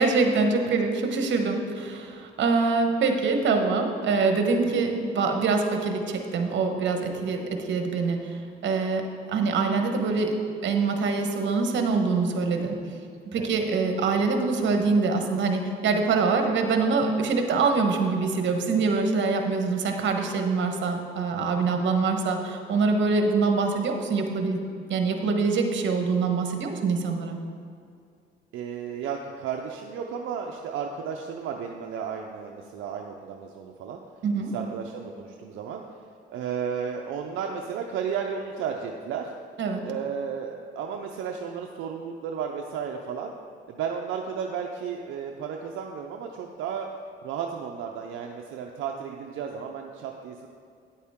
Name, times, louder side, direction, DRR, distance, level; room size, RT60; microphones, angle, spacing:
voice 1, 0.0-12.8 13.3-24.6 24.9-27.4 34.2-34.5 39.6-39.8, right 4 dB, 70° right, 4 dB, 1.2 m, -24 dB
voice 2, 28.5-34.0 34.5-35.8 36.3-39.3 39.8-43.3 43.7-46.9 47.2-50.5, right 7 dB, 85° right, 2 dB, 0.6 m, -33 dB
9.6 x 8.5 x 3.6 m, 2.4 s
cardioid pair, 90°, 20 cm